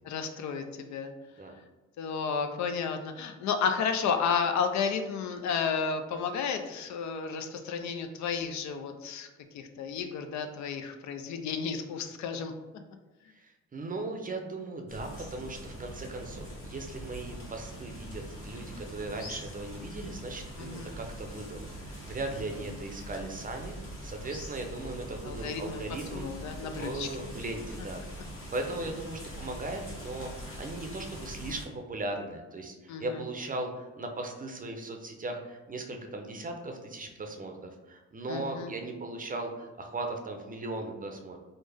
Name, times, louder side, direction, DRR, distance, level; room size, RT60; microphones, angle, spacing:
voice 1, 0.1-1.1 2.0-9.3 9.5-12.5 20.6-20.9 22.3-22.4 25.3-25.8 26.1-27.1 32.9-33.2 38.3-38.7, left 6 dB, 70° left, 6 dB, 0.5 m, -32 dB
voice 2, 13.3-26.3 26.6-41.4, right 2 dB, 30° right, 3 dB, 0.5 m, -38 dB
sound 1, 14.9-31.6, equal, 45° left, 1.4 m, -43 dB
3.4 x 2.1 x 3.3 m, 1.2 s
cardioid pair, 80°, 30 cm